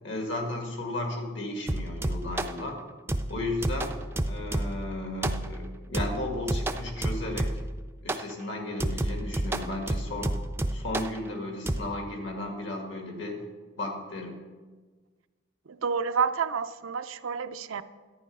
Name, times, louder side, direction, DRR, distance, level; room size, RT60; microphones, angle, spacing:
voice 1, 0.0-2.8 3.3-3.9 4.3-7.6 8.0-10.4 10.7-13.4 13.8-14.4, left 2 dB, 70° left, 2 dB, 2.2 m, -34 dB
sound 1, 1.7-2.6 3.1-4.9 5.2-5.6 5.9-7.8 8.1-8.3 8.8-11.2 11.7-11.8, right 1 dB, 10° right, 0.4 m, -30 dB
voice 2, 15.7-17.8, right 6 dB, 85° right, 10 dB, 0.5 m, -29 dB
11.5 x 9.8 x 5.4 m, 1.4 s
head